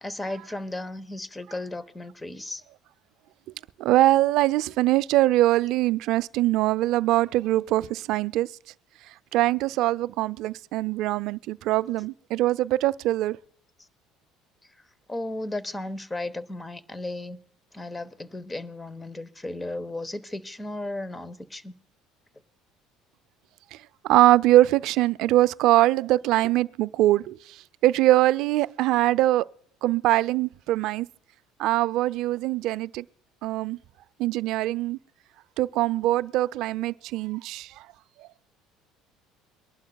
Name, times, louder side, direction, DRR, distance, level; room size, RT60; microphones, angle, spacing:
voice 1, 0.0-2.6 15.1-17.4 17.7-21.7, left 2 dB, 15° left, 1.0 m, -35 dB
voice 2, 3.8-8.5 9.3-13.4 24.0-27.4 27.8-29.5 29.8-31.1 31.6-33.0 33.4-33.8 34.2-35.0 35.6-37.7, right 15 dB, 70° right, 0.4 m, -22 dB
23.5 x 11.5 x 2.3 m
supercardioid pair, 75°, 0 cm